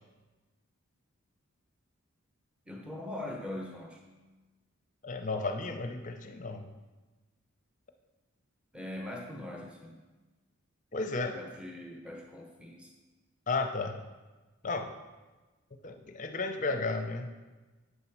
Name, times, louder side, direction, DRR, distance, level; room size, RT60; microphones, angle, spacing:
voice 1, 2.7-4.0 8.7-10.0 11.3-12.9, left 1 dB, 5° right, 0 dB, 0.8 m, -41 dB
voice 2, 5.0-6.6 10.9-11.4 13.5-14.0 14.6-14.9 15.8-17.3, left 3 dB, 35° left, 6 dB, 0.6 m, -33 dB
8.4 x 4.1 x 5.9 m, 1.2 s
head